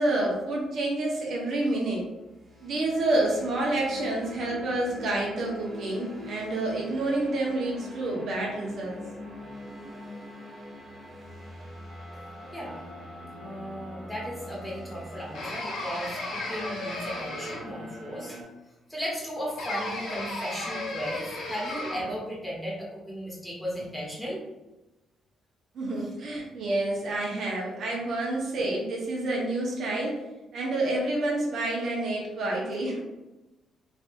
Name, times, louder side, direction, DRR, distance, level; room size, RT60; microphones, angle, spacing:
voice 1, 0.0-2.0 2.6-9.0 25.7-30.2 30.5-33.0, right 2 dB, 65° right, -2 dB, 0.8 m, -28 dB
sound 1, 2.2-18.4, left 1 dB, 25° right, 1.2 m, -43 dB
voice 2, 13.4-18.4 18.9-24.4 25.9-26.1, equal, 5° left, -5 dB, 1.2 m, -36 dB
sound 2, 15.3-17.9 19.6-22.2, left 2 dB, 75° left, 0.9 m, -35 dB
3.3 x 2.7 x 2.5 m, 1.0 s
cardioid pair, 90°, 0 cm